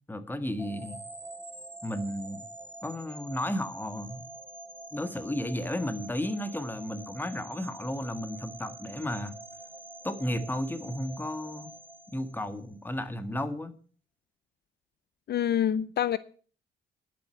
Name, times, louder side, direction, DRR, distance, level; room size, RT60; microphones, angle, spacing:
voice 1, 0.1-1.0 1.8-2.5 2.8-4.2 4.9-9.3 10.0-11.7 12.1-13.7, left 1 dB, 10° left, 1.6 m, -33 dB
sound 1, 0.6-12.7, right 2 dB, 10° right, 1.0 m, -46 dB
voice 2, 15.3-16.2, left 10 dB, 55° left, 0.6 m, -26 dB
11.0 x 7.9 x 7.9 m
cardioid pair, 90°, 20 cm